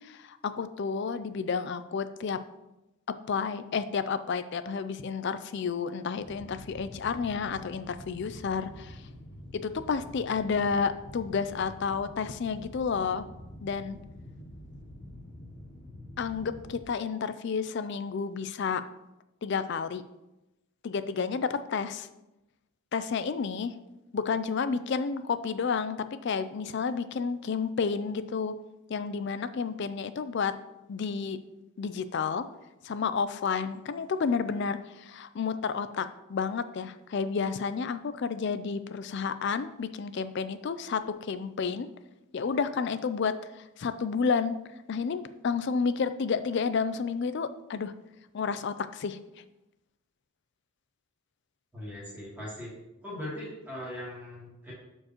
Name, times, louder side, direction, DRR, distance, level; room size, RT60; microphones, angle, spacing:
voice 1, 0.0-2.4 3.3-9.0 9.5-13.2 13.6-14.0 16.2-18.8 19.4-20.0 20.8-22.1 22.9-23.7 24.1-26.0 26.2-28.5 28.9-30.5 30.9-31.4 31.8-32.4 32.8-41.9 42.3-44.6 44.9-47.9 48.3-49.2, left 5 dB, 55° left, 12 dB, 0.4 m, -31 dB
sound 1, 6.2-16.8, left 1 dB, 30° left, 0.9 m, -47 dB
voice 2, 51.7-52.7 53.0-54.7, left 1 dB, 10° right, -8 dB, 2.8 m, -39 dB
12.5 x 4.5 x 3.0 m, 0.96 s
head